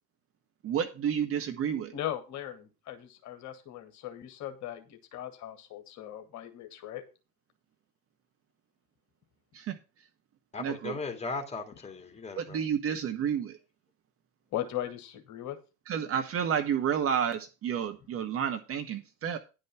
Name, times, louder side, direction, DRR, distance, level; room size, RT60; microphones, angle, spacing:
voice 1, 0.6-1.9 9.5-9.8 10.6-11.0 12.4-13.6 15.9-19.4, right 8 dB, 30° right, 1.0 m, -30 dB
voice 2, 1.9-7.0 14.5-15.6, left 12 dB, 35° left, 1.6 m, -38 dB
voice 3, 10.5-12.6, left 3 dB, 15° left, 2.3 m, -37 dB
10.5 x 5.3 x 6.0 m
figure-of-eight pair, 75°, 47 cm